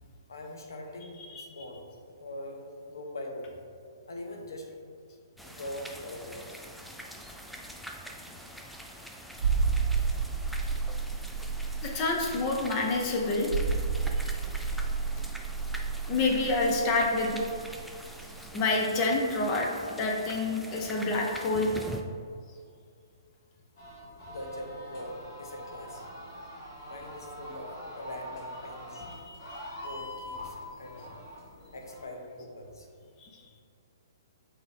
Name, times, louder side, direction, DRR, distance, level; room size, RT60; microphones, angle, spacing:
voice 1, 0.3-1.8 2.2-4.8 5.4-6.6 14.3-14.5 24.3-26.1 26.8-29.0 29.8-31.2 31.7-32.9, left 1 dB, 75° left, 2 dB, 0.8 m, -42 dB
voice 2, 1.1-1.6 11.8-13.5 14.2-14.3 16.1-17.4 18.5-21.7 28.9-29.6 33.2-33.4, left 2 dB, 30° left, 1 dB, 0.7 m, -28 dB
sound 1, 5.4-22.0, equal, ahead, 0.3 m, -44 dB
sound 2, 9.4-17.8 18.1-18.2, right 5 dB, 65° right, 0.4 m, -30 dB
sound 3, 23.8-32.0, left 1 dB, 45° left, 1.5 m, -44 dB
5.8 x 2.7 x 3.4 m, 2.2 s
hypercardioid pair, 130°, 2 cm